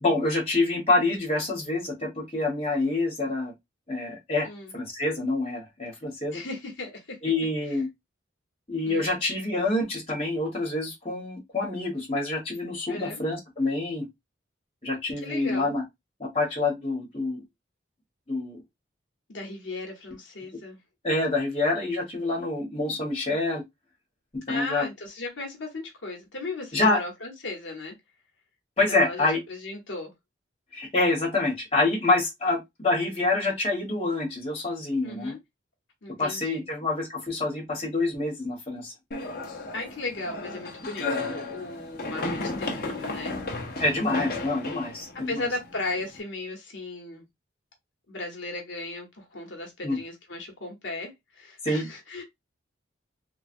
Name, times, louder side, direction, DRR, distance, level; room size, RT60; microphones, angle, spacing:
voice 1, 0.0-3.5 3.9-4.5 4.7-6.4 7.2-7.9 8.7-14.1 14.8-15.8 16.2-17.4 18.3-18.6 21.0-23.6 24.5-24.9 26.7-27.0 28.8-29.4 30.7-35.3 36.2-38.9 43.8-45.5 49.8-50.0 51.6-51.8, left 2 dB, 30° left, 1.3 m, -26 dB
voice 2, 6.3-7.2 8.8-9.2 12.9-13.2 15.2-15.7 19.3-20.8 24.5-27.9 28.9-30.1 35.0-35.4 36.0-36.7 39.7-43.4 45.3-47.3 48.1-52.2, left 2 dB, 75° left, 0.9 m, -36 dB
sound 1, 39.1-46.2, left 2 dB, 50° left, 0.7 m, -34 dB
3.1 x 2.3 x 2.6 m
head